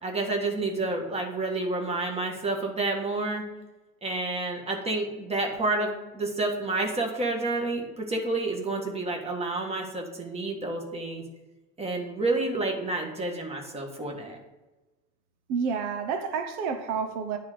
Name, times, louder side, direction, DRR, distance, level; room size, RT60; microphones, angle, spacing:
voice 1, 0.0-3.4 4.0-11.3 11.8-14.4, right 2 dB, 15° right, 1 dB, 1.6 m, -29 dB
voice 2, 15.5-17.4, right 6 dB, 75° right, 7 dB, 1.0 m, -29 dB
10.0 x 3.8 x 6.7 m, 1.1 s
supercardioid pair, 130°, 36 cm